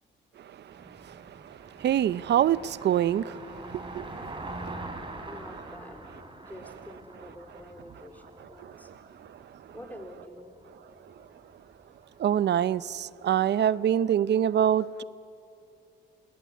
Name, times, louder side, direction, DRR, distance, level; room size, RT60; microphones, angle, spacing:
voice 1, 0.4-0.7 5.2-6.0 6.4-8.9 9.7-10.5, left 1 dB, 10° left, 4.1 m, -47 dB
Car passing by, 0.7-13.0, right 2 dB, 25° right, 3.8 m, -45 dB
voice 2, 1.4-5.2 8.6-8.9 9.3-9.4 12.2-15.0, right 10 dB, 60° right, 0.7 m, -26 dB
29.0 x 18.5 x 9.6 m
cardioid pair, 90°, 20 cm